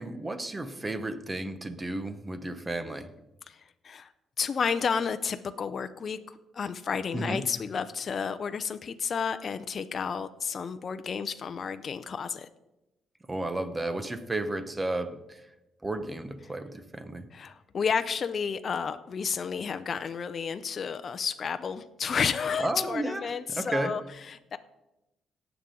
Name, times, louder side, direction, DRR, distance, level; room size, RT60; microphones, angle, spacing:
voice 1, 0.0-3.1 7.1-7.4 13.3-15.4 15.8-17.3 22.6-24.0, right 2 dB, 20° right, 10 dB, 1.1 m, -33 dB
voice 2, 4.4-12.5 17.3-24.6, left 6 dB, 45° left, 10 dB, 0.6 m, -31 dB
18.0 x 7.0 x 3.8 m, 0.94 s
cardioid pair, 90°, 0 cm